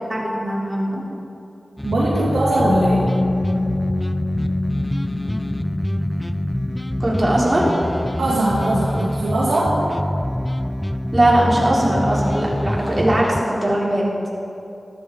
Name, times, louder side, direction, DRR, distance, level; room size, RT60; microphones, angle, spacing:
voice 1, 0.1-1.0 7.0-7.7 11.1-14.1, right 1 dB, 30° right, -6 dB, 3.9 m, -19 dB
sound 1, 1.8-13.4, equal, 10° left, 0.4 m, -25 dB
voice 2, 1.8-3.1 8.2-9.8, right 1 dB, 90° right, -10 dB, 2.8 m, -20 dB
Bass guitar, 2.6-8.9, left 2 dB, 75° left, 2.4 m, -27 dB
14.0 x 14.0 x 4.8 m, 2.7 s
cardioid pair, 45°, 0 cm